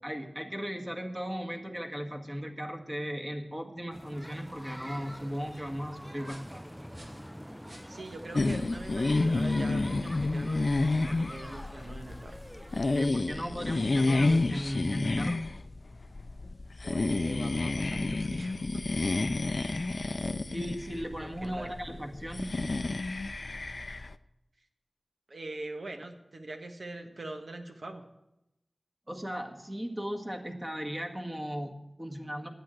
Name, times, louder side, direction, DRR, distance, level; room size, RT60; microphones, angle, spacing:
voice 1, 0.0-6.7 12.9-15.4 20.5-22.5 29.1-32.5, equal, 20° right, 2 dB, 1.7 m, -37 dB
sound 1, 3.9-13.1, equal, ahead, 0.4 m, -46 dB
sound 2, 6.2-11.2, right 1 dB, 55° right, 2.3 m, -59 dB
voice 2, 7.9-12.4 13.6-14.3 16.8-19.0 21.2-21.7 25.3-28.0, right 2 dB, 75° right, 4 dB, 1.5 m, -43 dB
sound 3, 8.3-24.1, left 2 dB, 60° left, 0.5 m, -30 dB
10.5 x 9.0 x 7.7 m, 0.87 s
wide cardioid pair, 70°, 0 cm